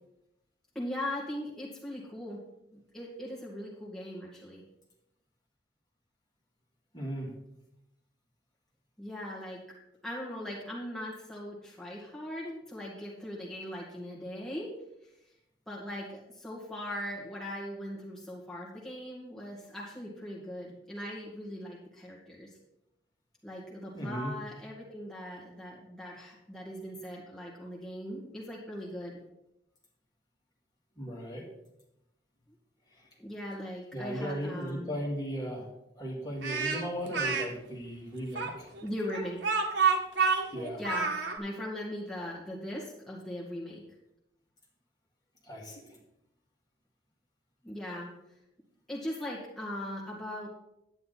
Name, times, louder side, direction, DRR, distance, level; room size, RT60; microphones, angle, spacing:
voice 1, 0.8-2.4 2.9-4.6 9.0-9.6 10.0-14.7 15.7-22.5 23.4-29.1 33.2-34.9 38.8-39.5 40.8-43.8 47.6-48.1 48.9-50.5, left 1 dB, ahead, -6 dB, 1.9 m, -39 dB
voice 2, 6.9-7.3 23.9-24.4 31.0-31.5 33.9-35.7 36.0-38.7 40.5-40.8 45.4-45.8, equal, 25° left, -3 dB, 2.3 m, -36 dB
Speech, 36.4-37.5 38.3-41.4, right 5 dB, 80° right, 1.2 m, -28 dB
10.5 x 9.1 x 4.1 m, 0.85 s
head